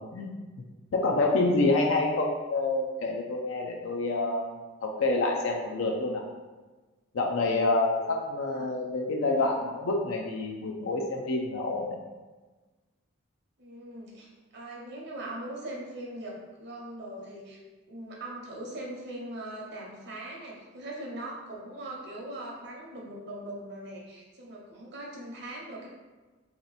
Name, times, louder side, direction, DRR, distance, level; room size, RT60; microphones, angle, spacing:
voice 1, 0.9-6.2 7.1-12.0, left 2 dB, 65° left, 0 dB, 0.4 m, -27 dB
voice 2, 8.5-8.8 13.6-17.6 17.9-25.9, right 1 dB, 50° right, -2 dB, 0.8 m, -41 dB
3.1 x 2.9 x 4.0 m, 1.3 s
head